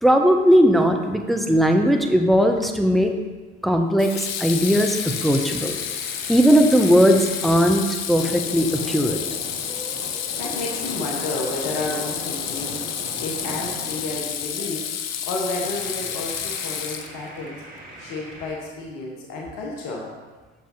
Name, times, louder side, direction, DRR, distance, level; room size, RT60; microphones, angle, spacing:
voice 1, 0.0-3.2 3.6-5.8 6.3-9.2, equal, ahead, 4 dB, 0.7 m, -18 dB
Water tap faucet / Sink (filling or washing), 2.3-2.7 4.0-17.4, left 9 dB, 45° left, 0.7 m, -30 dB
sound 1, 4.6-7.7 8.2-14.8 15.5-18.6, right 2 dB, 25° right, 1.9 m, -40 dB
voice 2, 10.4-12.9 13.2-17.6 18.0-20.1, left 2 dB, 65° left, -1 dB, 1.3 m, -31 dB
6.6 x 5.6 x 3.8 m, 1.3 s
hypercardioid pair, 60°, 35 cm